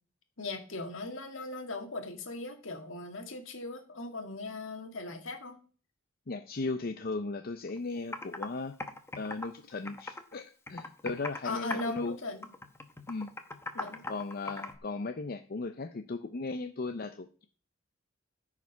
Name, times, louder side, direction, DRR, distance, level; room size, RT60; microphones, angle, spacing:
voice 1, 0.4-5.6 11.4-12.5 13.7-14.0, left 2 dB, 70° left, 5 dB, 1.8 m, -39 dB
voice 2, 6.3-8.7 9.2-12.2 13.1-13.3 14.1-17.5, left 3 dB, 45° left, 7 dB, 0.6 m, -36 dB
Computer keyboard, 7.7-7.8 8.1-8.5 8.8-10.3 10.7-11.4 11.7-12.1 12.4-14.8, left 2 dB, 10° left, 1.0 m, -39 dB
13.5 x 4.9 x 5.6 m, 0.41 s
head